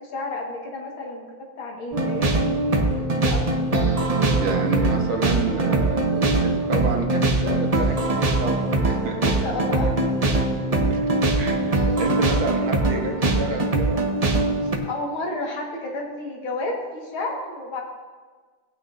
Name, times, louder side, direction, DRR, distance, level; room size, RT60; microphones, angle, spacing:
voice 1, 0.0-2.8 3.2-3.4 9.4-10.3 14.9-17.8, left 2 dB, 80° left, -1 dB, 2.6 m, -31 dB
sound 1, 1.9-14.8, right 2 dB, 40° right, 0.5 m, -22 dB
voice 2, 4.4-9.3 10.9-11.1 11.4-14.0 14.6-14.7, right 3 dB, 85° right, 2 dB, 2.2 m, -29 dB
17.5 x 9.1 x 2.7 m, 1.4 s
omnidirectional pair, 2.2 m